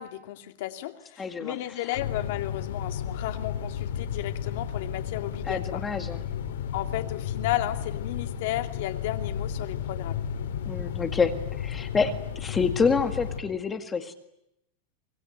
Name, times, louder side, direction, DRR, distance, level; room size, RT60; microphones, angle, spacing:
voice 1, 0.0-5.8 6.7-10.2, left 14 dB, 60° left, 7 dB, 2.6 m, -33 dB
voice 2, 1.2-1.5 5.5-6.2 10.7-11.3 11.6-14.1, left 5 dB, 15° left, 8 dB, 2.0 m, -27 dB
sound 1, 1.9-13.4, left 8 dB, 90° left, 3.4 m, -33 dB
25.0 x 21.5 x 9.5 m, 0.81 s
supercardioid pair, 165°, 0 cm